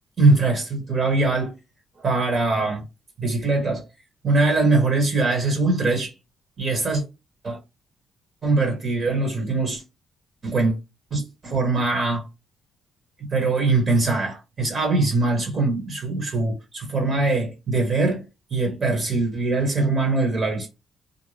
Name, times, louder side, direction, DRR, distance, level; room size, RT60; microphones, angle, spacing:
voice 1, 0.2-1.5 2.0-2.8 3.2-3.8 4.2-6.1 6.6-7.0 7.4-7.6 8.4-9.8 10.4-10.7 11.1-12.2 13.2-18.3 18.5-20.7, right 3 dB, 45° right, 1.1 m, -22 dB
2.6 x 2.1 x 3.1 m
cardioid pair, 90°, 0 cm